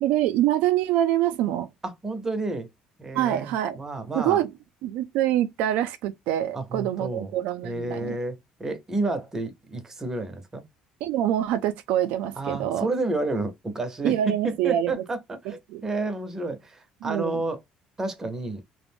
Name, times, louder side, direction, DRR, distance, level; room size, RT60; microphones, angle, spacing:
voice 1, 0.0-1.7 3.1-3.8 4.1-4.5 4.8-8.2 11.0-12.9 14.0-15.0 15.5-15.8 17.0-17.4, right 12 dB, 85° right, 0.3 m, -25 dB
voice 2, 1.8-2.7 3.0-4.4 6.5-7.3 7.6-10.6 12.4-17.6 18.0-18.6, right 2 dB, 20° right, 0.6 m, -30 dB
2.4 x 2.0 x 3.3 m
cardioid pair, 120°, 2 cm